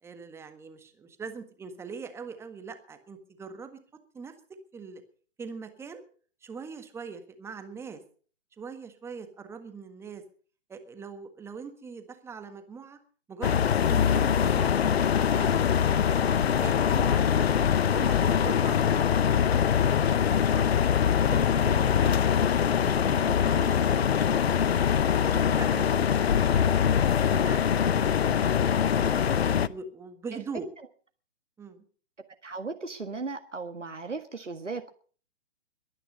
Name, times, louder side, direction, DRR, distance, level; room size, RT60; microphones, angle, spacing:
voice 1, 0.0-3.8 4.1-4.3 4.7-5.0 5.4-6.0 6.4-8.0 8.6-10.2 10.7-13.0 13.3-15.6 16.1-17.5 17.9-19.7 20.1-20.7 21.3-22.2 22.7-24.1 25.2-27.6 28.2-30.7 31.6-31.8, right 5 dB, 5° right, 8 dB, 1.5 m, -42 dB
sound 1, 13.4-29.7, left 8 dB, 60° left, 0.8 m, -23 dB
voice 2, 32.4-34.9, right 4 dB, 85° right, 6 dB, 1.9 m, -36 dB
22.0 x 10.0 x 5.4 m, 0.42 s
figure-of-eight pair, 130°, 36 cm